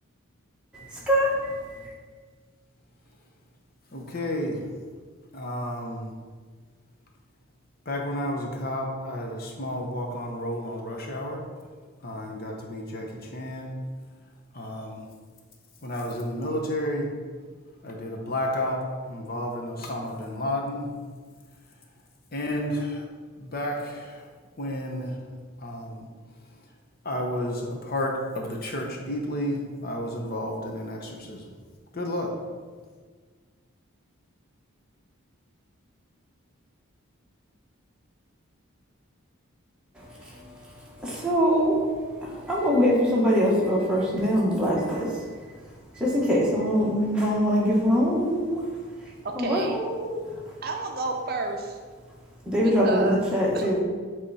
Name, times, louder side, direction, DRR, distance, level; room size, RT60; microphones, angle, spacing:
voice 1, 0.7-1.9 41.0-41.8 42.2-45.3 46.0-48.6 49.4-50.2 52.5-53.8, equal, 5° right, -6 dB, 1.3 m, -23 dB
voice 2, 3.9-4.6 5.3-6.1 7.9-11.4 12.0-13.7 14.5-15.1 15.8-17.1 17.8-20.9 22.3-23.0 23.4-24.3 24.6-25.2 25.6-26.1 27.0-31.6 31.9-32.3, left 1 dB, 45° left, 1 dB, 0.8 m, -31 dB
voice 3, 49.2-49.8 50.6-51.8 52.8-53.8, right 3 dB, 45° right, 3 dB, 0.5 m, -30 dB
8.3 x 3.6 x 4.1 m, 1.6 s
head